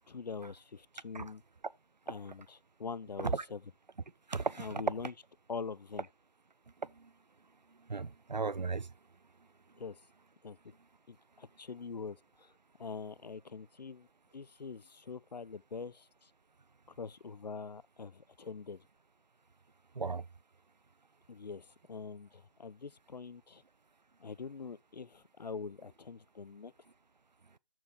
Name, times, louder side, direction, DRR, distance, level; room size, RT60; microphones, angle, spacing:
voice 1, 0.1-1.4 2.1-3.6 4.6-5.1 5.5-6.1 9.8-10.0 10.4-10.7 11.1-12.5 12.8-14.1 14.3-16.3 16.9-18.8 21.3-23.6 24.2-26.7, left 5 dB, 75° left, 0.5 m, -44 dB
voice 2, 4.3-4.7 6.8-7.1 7.9-8.9 19.9-20.2, right 4 dB, 90° right, 0.6 m, -36 dB
13.0 x 4.5 x 3.1 m
figure-of-eight pair, 155°, 21 cm